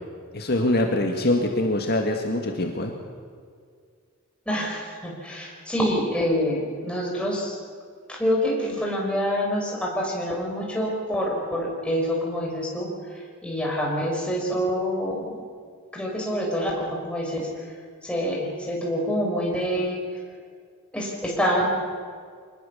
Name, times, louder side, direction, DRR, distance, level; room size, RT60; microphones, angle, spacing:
voice 1, 0.3-2.9, left 1 dB, 50° left, 2 dB, 2.0 m, -24 dB
voice 2, 4.5-7.6 8.1-15.4 15.9-17.5 18.0-20.0 20.9-21.7, equal, 5° left, -2 dB, 5.6 m, -26 dB
24.5 x 20.5 x 7.2 m, 2.1 s
head